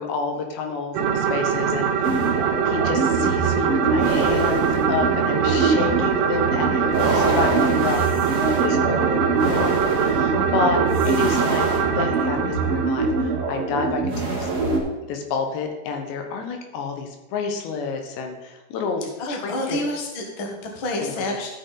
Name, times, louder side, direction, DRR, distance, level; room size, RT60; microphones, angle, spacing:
voice 1, 0.0-11.7 12.0-14.5 15.1-19.8 21.0-21.2, left 4 dB, 80° left, 3 dB, 3.4 m, -29 dB
sound 1, 0.9-13.8, right 7 dB, 75° right, 2.8 m, -23 dB
sound 2, 2.0-14.8, right 3 dB, 55° right, 0.8 m, -24 dB
voice 2, 19.2-21.5, left 2 dB, 65° left, 1 dB, 1.2 m, -28 dB
14.0 x 6.1 x 4.1 m, 1.1 s
omnidirectional pair, 5.0 m